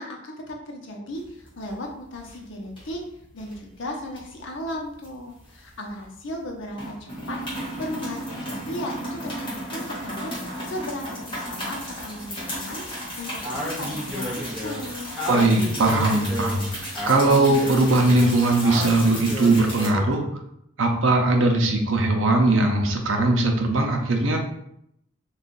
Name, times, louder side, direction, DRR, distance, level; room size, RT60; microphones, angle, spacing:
voice 1, 0.0-3.0 3.3-10.3 10.6-12.8 13.2-15.1, left 1 dB, 65° left, 1 dB, 0.6 m, -36 dB
sound 1, 1.2-1.9 2.2-2.4 2.8-3.6 4.1-6.0 6.3-6.5 6.7-19.9, equal, 25° left, 1.1 m, -34 dB
Speech, 13.4-20.2, left 1 dB, 5° right, 0.7 m, -32 dB
voice 2, 15.3-20.2 20.8-24.4, right 2 dB, 70° right, 3 dB, 0.5 m, -20 dB
2.6 x 2.3 x 3.7 m, 0.76 s
head